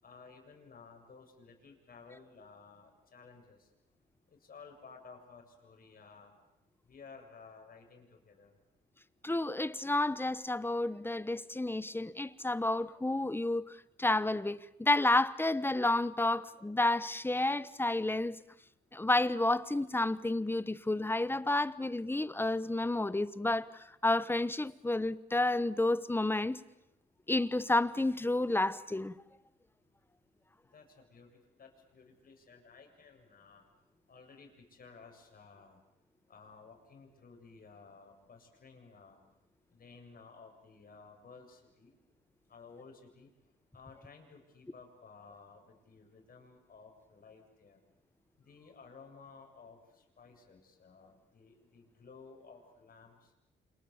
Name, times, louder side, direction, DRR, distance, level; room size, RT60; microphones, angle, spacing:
voice 1, 0.0-3.7 4.3-6.4 6.9-8.5 30.7-33.6 34.1-35.8 36.3-39.2 39.7-42.0 42.5-43.3 43.7-47.8 48.4-53.3, left 5 dB, 45° left, 7.6 m, -55 dB
voice 2, 9.2-18.4 18.9-26.6 27.3-29.1, left 2 dB, 10° left, 1.0 m, -30 dB
28.5 x 27.0 x 7.2 m
cardioid pair, 90°, 20 cm